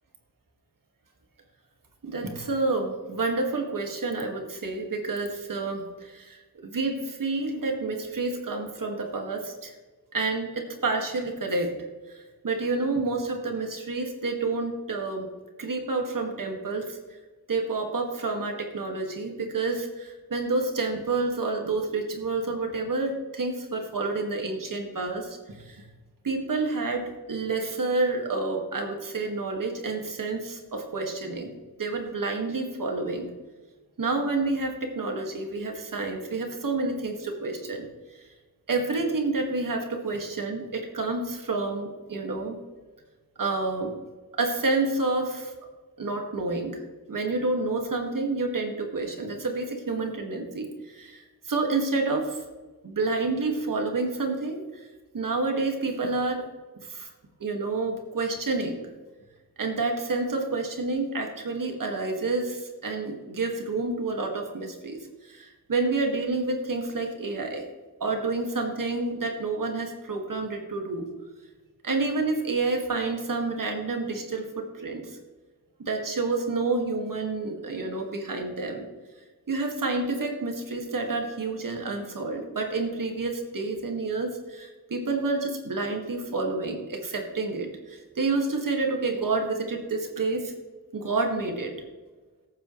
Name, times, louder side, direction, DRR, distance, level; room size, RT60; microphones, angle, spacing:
voice 1, 2.0-9.7 10.1-11.8 12.1-15.3 15.6-17.0 17.5-25.9 26.2-31.5 31.8-33.3 34.0-38.2 38.7-42.6 43.4-44.0 44.3-45.5 46.0-46.8 47.1-52.4 52.8-54.9 55.1-56.4 56.8-57.1 57.4-58.8 59.6-67.6 68.0-71.1 71.8-75.2 75.8-78.9 79.5-90.5 90.9-91.7, right 3 dB, 70° right, 2 dB, 2.0 m, -29 dB
17.0 x 9.0 x 3.2 m, 1.3 s
wide cardioid pair, 115°, 34 cm